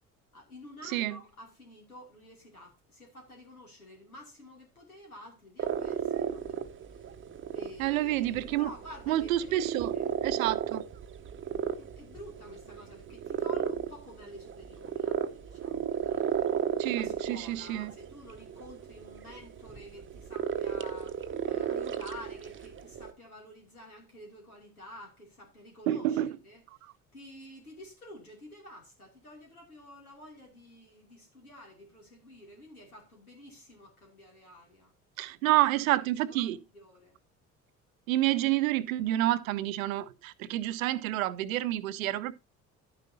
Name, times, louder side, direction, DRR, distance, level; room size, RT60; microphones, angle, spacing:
voice 1, 0.3-6.6 6.8-7.1 7.5-10.1 11.7-16.3 16.6-26.6 27.1-34.9 35.4-35.6 36.0-37.2, left 1 dB, 85° left, 2.7 m, -50 dB
sound 1, 5.6-23.1, right 8 dB, 30° right, 0.8 m, -34 dB
voice 2, 7.8-8.7 9.1-9.9 10.2-10.8 16.8-17.9 25.9-26.3 35.2-36.6 38.1-42.3, right 14 dB, 70° right, 0.7 m, -28 dB
11.5 x 9.5 x 2.7 m
figure-of-eight pair, 55°, 43 cm